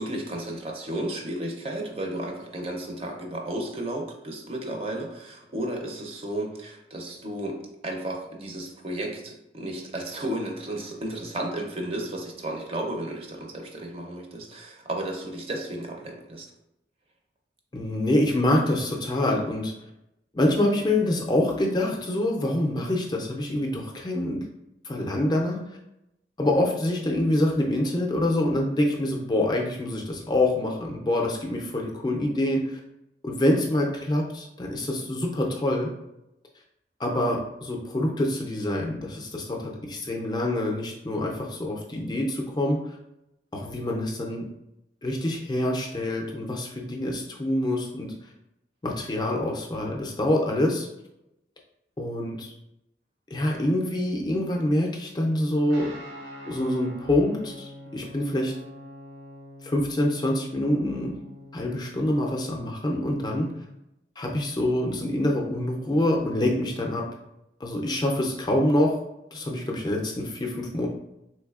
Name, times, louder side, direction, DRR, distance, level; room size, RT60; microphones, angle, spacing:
voice 1, 0.0-16.5, right 1 dB, 35° right, 1 dB, 0.5 m, -33 dB
voice 2, 17.7-19.7 20.3-24.5 24.8-25.6 26.4-32.8 33.2-35.9 37.0-42.8 43.5-44.5 45.0-48.1 48.8-50.9 52.0-52.5 53.3-55.9 56.5-58.5 59.6-61.1 61.5-63.5 64.2-67.0 67.6-68.9 69.3-70.9, left 1 dB, 25° left, 0 dB, 0.4 m, -26 dB
Guitar, 55.7-63.8, equal, 85° right, 0.7 m, -45 dB
3.4 x 3.1 x 2.3 m, 0.86 s
head